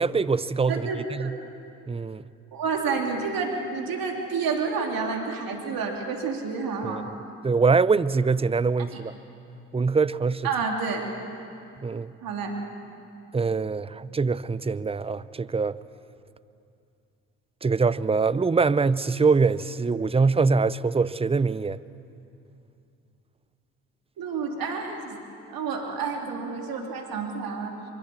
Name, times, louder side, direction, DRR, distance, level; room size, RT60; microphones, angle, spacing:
voice 1, 0.0-1.3 1.9-2.2 6.8-7.0 7.4-9.1 9.7-10.5 11.8-12.1 13.3-15.8 17.6-21.8, right 4 dB, 15° right, 0.6 m, -23 dB
voice 2, 0.7-1.3 2.5-7.0 8.9-9.0 10.4-11.1 12.2-12.6 24.2-25.2 25.5-27.7, right 5 dB, 65° right, 3.1 m, -29 dB
24.0 x 24.0 x 7.1 m
hypercardioid pair, 50°, 37 cm